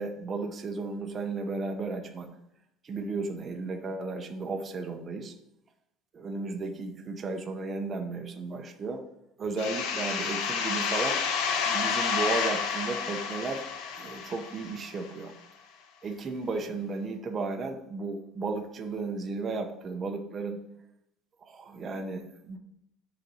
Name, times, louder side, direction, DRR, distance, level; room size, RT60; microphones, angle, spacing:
voice 1, 0.0-2.3 2.8-5.4 6.1-9.0 9.4-11.2 11.6-13.6 14.0-15.3 16.0-20.6 21.4-22.6, right 3 dB, 20° right, 4 dB, 0.7 m, -34 dB
sound 1, 9.6-15.1, left 6 dB, 65° left, 1.1 m, -30 dB
7.7 x 4.0 x 6.1 m, 0.80 s
cardioid pair, 175°, 0 cm